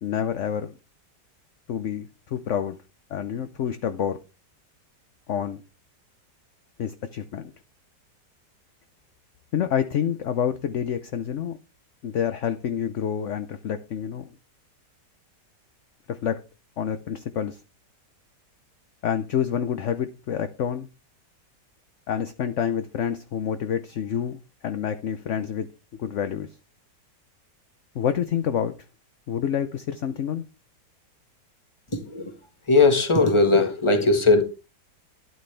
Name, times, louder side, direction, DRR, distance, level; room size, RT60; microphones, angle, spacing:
voice 1, 0.0-0.7 1.7-2.8 3.1-4.2 5.3-5.6 6.8-7.5 9.5-11.6 12.0-14.3 16.1-16.4 16.8-17.6 19.0-20.9 22.1-24.4 24.6-25.7 26.0-26.5 27.9-28.7 29.3-30.4, left 8 dB, 55° left, 0.9 m, -28 dB
voice 2, 31.9-32.3 32.7-34.4, left 3 dB, 20° left, 1.4 m, -19 dB
12.5 x 9.4 x 3.3 m
omnidirectional pair, 1.8 m